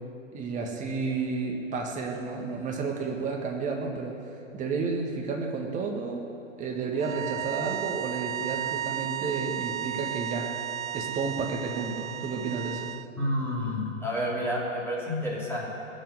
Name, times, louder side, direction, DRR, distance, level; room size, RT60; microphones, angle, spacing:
voice 1, 0.3-4.1 4.5-6.2 6.6-10.5 10.9-12.9, right 4 dB, 20° right, 1 dB, 1.9 m, -31 dB
sound 1, 7.0-13.1, right 11 dB, 85° right, 0.5 m, -34 dB
voice 2, 13.2-15.7, left 1 dB, 5° left, -6 dB, 3.5 m, -29 dB
20.5 x 7.8 x 8.0 m, 2.7 s
figure-of-eight pair, 120°, 39 cm